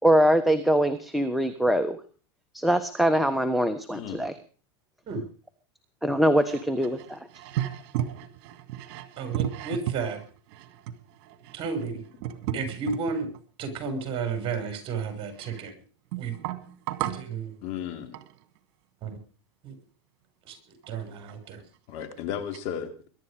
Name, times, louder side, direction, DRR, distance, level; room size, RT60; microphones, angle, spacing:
voice 1, 0.0-2.0 2.5-4.3 6.0-7.2, right 1 dB, ahead, 7 dB, 1.3 m, -23 dB
voice 2, 3.9-4.3 12.5-12.6 17.6-18.1 21.9-22.9, left 9 dB, 50° left, 7 dB, 3.4 m, -34 dB
sound 1, 6.4-13.4 14.0-15.7 16.1-17.3 18.1-18.4 20.8-20.9 21.1-21.3 22.0-22.1 22.5-22.6, right 12 dB, 60° right, 2.2 m, -35 dB
voice 3, 9.2-10.2 11.5-12.0 12.5-13.3 13.6-15.8 16.2-16.4 17.0-17.6 19.0-19.2 19.6-19.7 20.4-20.6 20.9-21.6, right 5 dB, 40° right, 6 dB, 6.1 m, -32 dB
22.0 x 11.5 x 5.1 m, 0.39 s
supercardioid pair, 120°, 14 cm